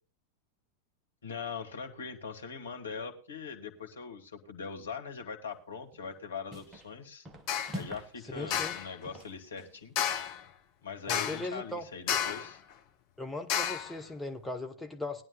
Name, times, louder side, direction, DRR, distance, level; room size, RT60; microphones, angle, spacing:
voice 1, 1.2-7.3 7.7-9.9 10.8-12.6, left 5 dB, 70° left, 1.6 m, -41 dB
sound 1, 5.9-6.2 6.5-6.9 7.2-8.2 8.4-9.8, equal, 20° right, 1.3 m, -45 dB
sound 2, 7.5-7.8 8.5-8.9 10.0-10.4 11.1-11.5 12.1-12.5 13.5-13.9, left 9 dB, 45° left, 1.1 m, -31 dB
voice 2, 8.3-8.8 11.1-11.9 12.1-12.2 13.2-15.2, left 2 dB, 5° left, 1.2 m, -38 dB
20.0 x 11.0 x 2.3 m
figure-of-eight pair, 90°, 0 cm